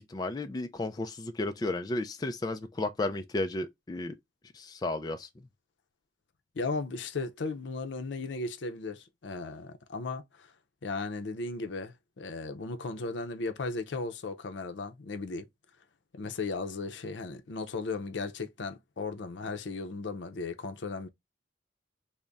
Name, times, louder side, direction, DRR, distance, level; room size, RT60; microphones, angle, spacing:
voice 1, 0.0-4.2 4.5-5.3, left 2 dB, 20° left, 0.3 m, -33 dB
voice 2, 6.6-10.5 10.8-15.5 16.1-21.1, left 3 dB, 85° left, 0.6 m, -36 dB
3.5 x 2.1 x 3.9 m
head